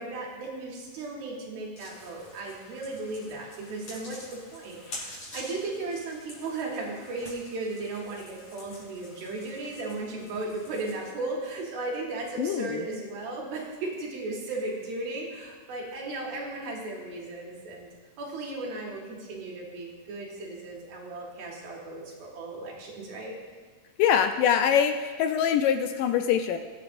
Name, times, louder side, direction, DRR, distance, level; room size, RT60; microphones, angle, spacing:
voice 1, 0.0-4.3 4.5-17.9 18.2-23.4, right 2 dB, 90° right, -3 dB, 3.9 m, -36 dB
sound 1, 1.7-11.1, left 1 dB, 40° left, 5.0 m, -47 dB
voice 2, 12.4-12.8 24.0-26.6, left 8 dB, 80° left, 7 dB, 2.0 m, -24 dB
22.0 x 9.4 x 2.6 m, 1.5 s
omnidirectional pair, 4.2 m